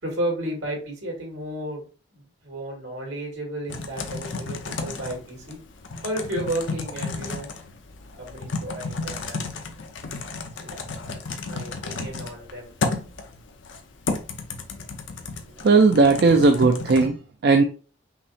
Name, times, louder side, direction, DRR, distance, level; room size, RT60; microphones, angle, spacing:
voice 1, 0.0-1.9 2.1-5.6 6.0-7.5 8.2-9.4 10.6-10.8 11.0-12.7, right 1 dB, 85° right, -1 dB, 2.5 m, -33 dB
Typing, 3.7-17.1, left 3 dB, 85° left, 0.8 m, -32 dB
voice 2, 15.6-17.2 17.4-17.6, right 3 dB, 60° right, 5 dB, 0.4 m, -16 dB
5.7 x 2.1 x 4.1 m, 0.36 s
head